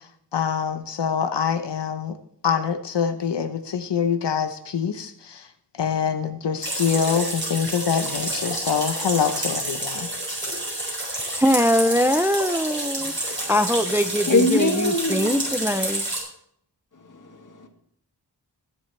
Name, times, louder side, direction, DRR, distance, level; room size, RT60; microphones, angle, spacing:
voice 1, 0.3-2.1 2.4-5.4 5.8-10.1, left 7 dB, 85° left, 8 dB, 0.9 m, -25 dB
sound 1, 6.6-16.2, right 1 dB, 30° right, 5.3 m, -29 dB
voice 2, 11.4-16.0, equal, 5° right, 10 dB, 0.4 m, -22 dB
voice 3, 14.3-15.7 17.1-17.7, left 2 dB, 50° left, 3 dB, 2.0 m, -23 dB
20.5 x 7.5 x 3.3 m, 0.67 s
wide cardioid pair, 85°, 41 cm